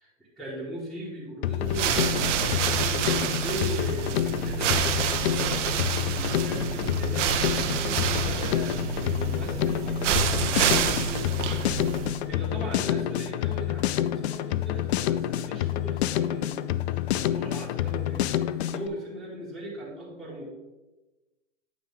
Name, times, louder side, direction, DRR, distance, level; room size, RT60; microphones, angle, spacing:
voice 1, 0.4-11.6 12.3-20.5, right 1 dB, ahead, -11 dB, 2.3 m, -39 dB
Drum kit, 1.4-18.9, left 12 dB, 55° left, 0.5 m, -28 dB
sound 1, 1.6-12.3, right 8 dB, 65° right, 0.9 m, -28 dB
9.1 x 5.6 x 3.5 m, 1.1 s
hypercardioid pair, 120°, 39 cm